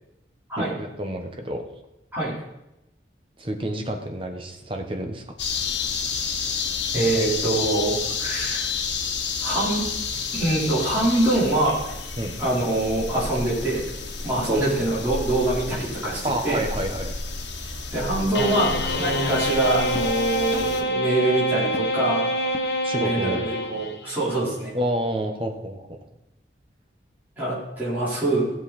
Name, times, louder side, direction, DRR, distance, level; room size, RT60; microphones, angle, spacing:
voice 1, 0.8-1.6 3.4-5.2 12.2-12.4 14.5-14.6 16.2-17.1 22.8-23.5 24.7-26.0, right 1 dB, 30° right, 4 dB, 1.2 m, -28 dB
sound 1, 5.4-20.8, left 5 dB, 80° left, 1.5 m, -31 dB
voice 2, 6.9-8.7 9.4-9.8 10.3-11.8 12.4-13.8 14.2-16.6 17.9-22.3 23.0-24.7 27.4-28.5, right 2 dB, 10° right, -11 dB, 4.3 m, -24 dB
sound 2, 18.3-24.1, equal, 60° left, 1.1 m, -26 dB
17.5 x 6.8 x 4.3 m, 0.90 s
head